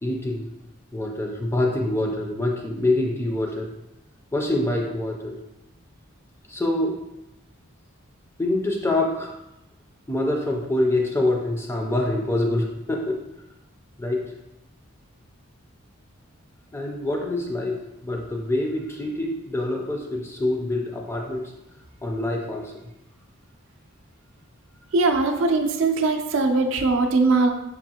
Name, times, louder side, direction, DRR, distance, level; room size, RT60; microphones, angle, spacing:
voice 1, 0.0-0.5 0.9-3.7 4.3-5.4 6.5-7.1 8.4-9.3 10.1-13.3 14.0-14.3 16.7-21.5 22.0-22.8, left 1 dB, 10° left, 1 dB, 0.3 m, -25 dB
voice 2, 24.9-27.5, right 3 dB, 65° right, 4 dB, 0.4 m, -20 dB
5.4 x 2.4 x 2.8 m, 0.90 s
head